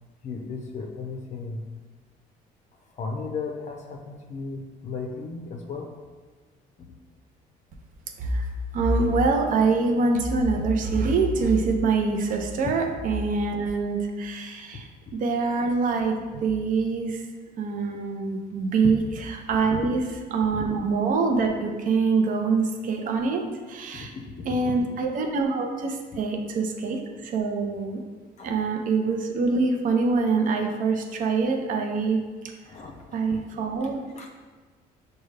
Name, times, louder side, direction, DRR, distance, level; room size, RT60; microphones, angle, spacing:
voice 1, 0.2-1.6 3.0-5.9 6.8-6.9 19.7-19.8 20.5-20.7 24.4-24.7 26.1-26.2 28.4-28.5 32.7-33.4 33.8-34.3, left 4 dB, 45° left, 1 dB, 0.5 m, -35 dB
voice 2, 8.7-17.2 17.6-20.0 20.3-24.1 24.5-28.0 28.4-32.2 33.1-34.3, right 4 dB, 50° right, 3 dB, 0.6 m, -25 dB
6.2 x 2.3 x 3.2 m, 1.4 s
cardioid pair, 110°, 17 cm